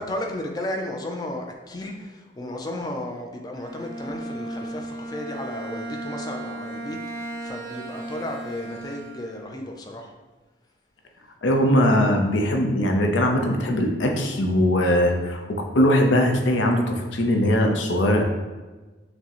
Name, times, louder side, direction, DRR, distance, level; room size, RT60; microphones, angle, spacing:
voice 1, 0.0-10.1, left 1 dB, 20° left, 2 dB, 0.4 m, -34 dB
Bowed string instrument, 3.5-9.6, right 1 dB, 50° right, 0.5 m, -35 dB
voice 2, 11.4-18.2, left 1 dB, 85° left, 3 dB, 0.5 m, -20 dB
5.9 x 2.0 x 2.9 m, 1.2 s
head